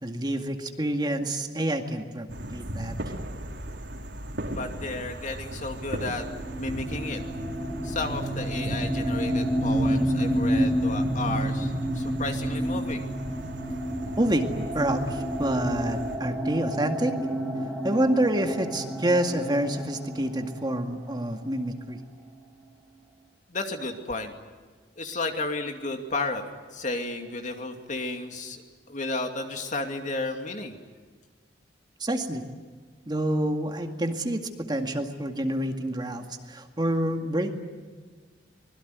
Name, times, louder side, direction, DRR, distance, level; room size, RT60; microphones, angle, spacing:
voice 1, 0.0-3.0 14.2-17.1 17.8-22.0 32.0-32.4 33.1-37.5, right 1 dB, 25° right, 5 dB, 2.0 m, -28 dB
sound 1, 2.3-16.2, right 1 dB, 85° right, 3.4 m, -38 dB
voice 2, 4.5-6.3 6.6-7.2 7.8-13.1 23.5-24.3 25.0-26.4 26.7-28.6 28.9-30.8, left 2 dB, 45° left, 5 dB, 2.6 m, -33 dB
sound 2, 6.2-21.8, equal, ahead, 3.1 m, -29 dB
25.0 x 21.5 x 9.5 m, 1.5 s
head